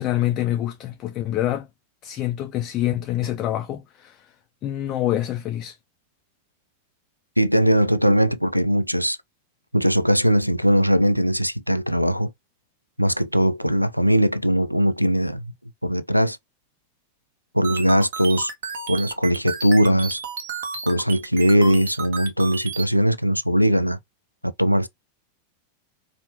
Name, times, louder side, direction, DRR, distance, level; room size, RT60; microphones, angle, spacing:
voice 1, 0.0-1.7 2.0-4.3 4.6-5.8, left 13 dB, 35° left, 0.3 m, -26 dB
voice 2, 7.4-9.2 9.7-12.3 13.0-15.4 15.8-16.4 17.5-18.5 18.9-20.2 20.9-24.0 24.4-24.9, equal, 90° right, 0.3 m, -20 dB
sound 1, 17.6-22.9, right 5 dB, 60° right, 0.9 m, -32 dB
4.3 x 2.0 x 2.9 m
figure-of-eight pair, 90°, 0 cm